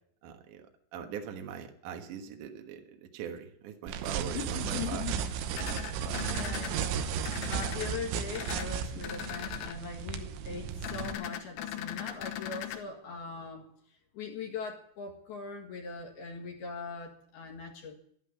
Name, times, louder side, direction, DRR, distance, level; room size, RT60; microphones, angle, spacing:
voice 1, 0.2-0.7 0.9-5.1 5.5-6.3, right 7 dB, 65° right, 4 dB, 2.2 m, -41 dB
sound 1, 3.9-11.1, right 8 dB, 90° right, 3.6 m, -35 dB
voice 2, 4.3-5.3 5.8-13.7 14.1-17.9, left 5 dB, 60° left, 1 dB, 3.4 m, -41 dB
sound 2, 5.5-6.7 7.2-7.9 8.3-8.7 9.0-9.7 10.8-12.8, left 11 dB, 75° left, 3.4 m, -39 dB
12.5 x 11.0 x 9.6 m, 0.68 s
omnidirectional pair, 5.6 m